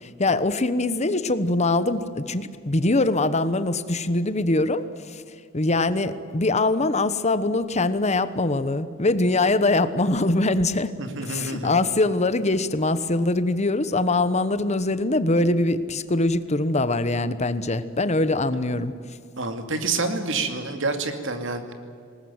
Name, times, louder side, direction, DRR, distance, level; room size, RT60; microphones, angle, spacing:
voice 1, 0.0-5.2 5.5-10.9 11.3-18.9, left 2 dB, 35° left, 13 dB, 1.1 m, -23 dB
voice 2, 11.0-11.7 19.4-21.7, right 3 dB, 65° right, 7 dB, 2.5 m, -28 dB
20.0 x 19.5 x 9.7 m, 2.2 s
head